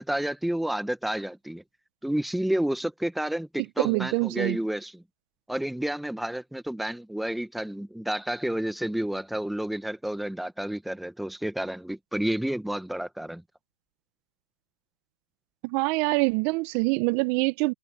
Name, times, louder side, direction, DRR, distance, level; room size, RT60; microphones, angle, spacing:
voice 1, 0.0-1.6 2.0-5.0 5.5-13.4, right 1 dB, ahead, 1.3 m, -30 dB
voice 2, 3.8-4.6 15.6-17.7, right 26 dB, 30° right, 1.4 m, -25 dB
hypercardioid pair, 140°, 7 cm